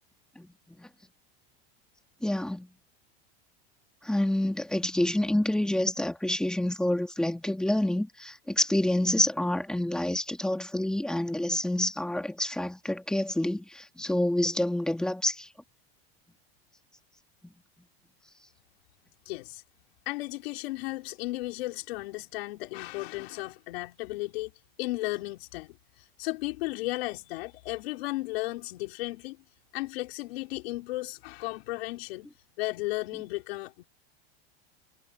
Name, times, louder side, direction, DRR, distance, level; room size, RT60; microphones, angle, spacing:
voice 1, 2.2-2.7 4.0-15.5, left 1 dB, ahead, 1.9 m, -28 dB
voice 2, 19.3-19.6 20.1-24.5 24.8-29.4 29.7-32.3 32.6-33.8, left 20 dB, 70° left, 4.1 m, -34 dB
supercardioid pair, 150°, 31 cm